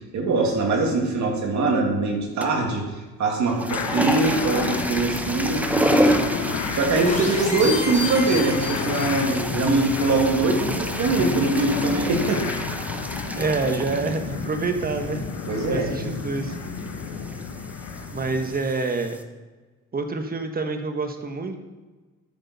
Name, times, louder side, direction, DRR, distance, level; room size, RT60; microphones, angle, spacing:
voice 1, 0.0-2.8 3.2-12.4 15.5-16.1, right 3 dB, 65° right, 1 dB, 2.3 m, -23 dB
sound 1, 2.4-2.7 3.4-19.2, right 1 dB, 5° right, 0.7 m, -30 dB
sound 2, 3.7-18.5, left 6 dB, 80° left, 1.2 m, -31 dB
sound 3, 7.1-9.5, left 3 dB, 25° left, 3.6 m, -31 dB
voice 2, 13.4-15.3 15.7-16.5 18.1-19.2 19.9-21.6, right 3 dB, 30° right, 6 dB, 1.3 m, -27 dB
13.0 x 6.3 x 4.1 m, 1.3 s
cardioid pair, 90°, 30 cm